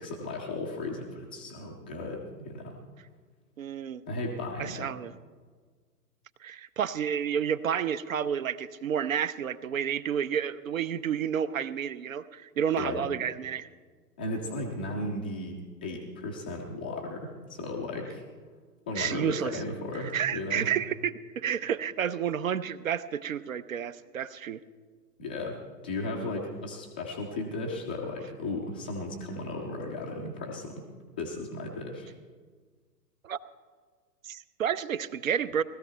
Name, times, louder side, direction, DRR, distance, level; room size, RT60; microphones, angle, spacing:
voice 1, 0.0-2.8 4.1-4.9 12.8-13.0 14.2-18.2 18.9-20.7 25.2-30.8 31.2-32.1, left 2 dB, 5° left, -3 dB, 0.4 m, -35 dB
voice 2, 3.6-4.0 4.6-5.1 6.4-13.7 19.0-19.6 20.1-24.6 33.2-33.4 34.2-35.6, right 8 dB, 55° right, 15 dB, 0.7 m, -30 dB
19.0 x 13.5 x 4.5 m, 1.5 s
figure-of-eight pair, 115°, 49 cm